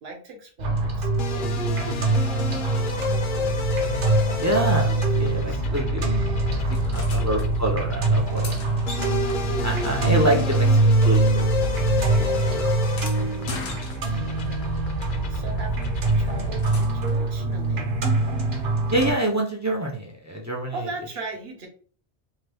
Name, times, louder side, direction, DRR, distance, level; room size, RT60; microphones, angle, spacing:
voice 1, 0.0-2.2 3.0-3.1 4.3-4.9 5.4-5.9 7.0-7.1 13.7-14.2 15.3-18.0 20.7-21.7, right 3 dB, 65° right, 2 dB, 1.1 m, -40 dB
sound 1, 0.6-19.1, right 2 dB, 45° right, 0.8 m, -23 dB
sound 2, 1.2-16.5, left 5 dB, 55° left, 0.7 m, -32 dB
voice 2, 4.4-4.9 5.2-6.1 6.7-8.5 9.6-12.0 12.3-12.7 18.9-20.7, right 1 dB, 25° right, -1 dB, 0.3 m, -26 dB
sound 3, 6.7-7.5 8.1-11.1 11.3-14.5 16.0-17.2 19.2-19.3, left 3 dB, 85° left, 1.0 m, -41 dB
2.8 x 2.2 x 3.3 m, 0.43 s
omnidirectional pair, 1.1 m